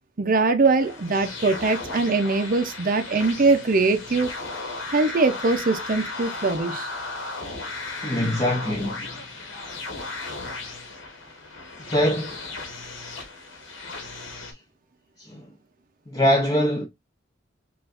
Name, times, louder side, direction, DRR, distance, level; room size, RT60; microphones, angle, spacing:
voice 1, 0.2-4.3 4.9-6.9, right 3 dB, 45° right, 0.6 m, -22 dB
sound 1, 0.8-14.5, left 3 dB, 85° left, 1.3 m, -35 dB
voice 2, 8.0-9.1 11.9-12.4 15.2-15.5 16.1-16.9, equal, 20° left, 0.6 m, -23 dB
5.6 x 2.5 x 2.4 m
head